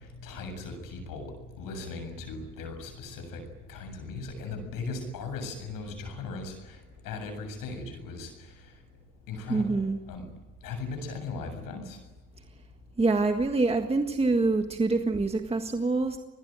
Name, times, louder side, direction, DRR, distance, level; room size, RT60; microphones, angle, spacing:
voice 1, 0.2-3.4 3.7-6.8 7.0-8.3 9.3-9.8 10.1-10.2 10.6-12.0, left 3 dB, 85° left, 7 dB, 7.6 m, -38 dB
voice 2, 9.5-10.0 13.0-16.2, right 3 dB, 20° right, 5 dB, 1.7 m, -25 dB
27.5 x 20.5 x 9.0 m, 1.1 s
cardioid pair, 120°, 33 cm